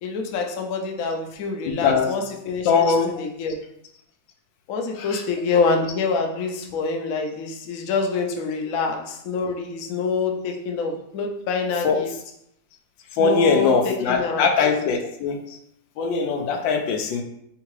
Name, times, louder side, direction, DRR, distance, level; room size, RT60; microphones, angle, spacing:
voice 1, 0.0-3.6 4.7-12.1 13.2-14.5, left 4 dB, 65° left, 2 dB, 0.9 m, -26 dB
voice 2, 1.7-2.1 2.6-3.1 5.0-5.2 11.8-12.0 13.2-15.4 16.0-17.2, left 5 dB, 85° left, 4 dB, 1.3 m, -21 dB
3.6 x 3.3 x 3.1 m, 0.74 s
omnidirectional pair, 2.0 m